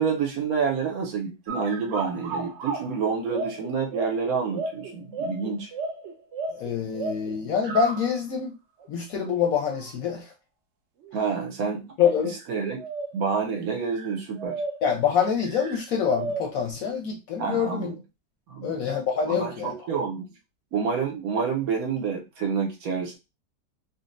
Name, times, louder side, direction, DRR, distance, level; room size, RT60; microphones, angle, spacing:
voice 1, 0.0-5.7 11.1-11.9 12.5-12.8 13.1-14.6 17.4-18.0 18.5-18.8 19.3-20.3 20.7-23.2, right 5 dB, 65° right, 1 dB, 1.0 m, -28 dB
sound 1, 1.5-8.2 8.8-8.9 9.7-10.1 11.0-11.2 12.3-12.5 12.8-13.3 13.8-15.0 15.4-16.7, right 3 dB, 85° right, 0.6 m, -34 dB
voice 2, 6.5-8.6 8.9-10.3 12.0-12.4 14.8-17.9 18.6-19.7, left 7 dB, 65° left, 2 dB, 0.9 m, -25 dB
3.9 x 2.1 x 2.5 m, 0.26 s
omnidirectional pair, 1.9 m